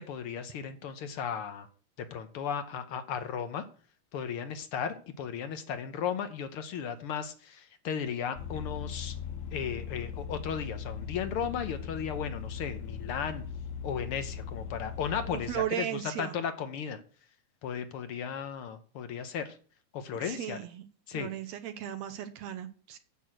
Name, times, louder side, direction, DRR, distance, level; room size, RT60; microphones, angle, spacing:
voice 1, 0.0-1.7 2.0-3.6 4.1-9.2 9.5-13.4 13.8-17.0 17.6-19.6 19.9-20.6 21.1-21.3, left 7 dB, 65° left, 9 dB, 1.4 m, -35 dB
Vehicle, 8.4-15.7, left 7 dB, 85° left, 2.2 m, -39 dB
voice 2, 15.2-16.4 20.2-20.8 21.1-23.0, right 11 dB, 75° right, 9 dB, 1.8 m, -36 dB
9.3 x 6.3 x 7.7 m, 0.42 s
omnidirectional pair, 3.3 m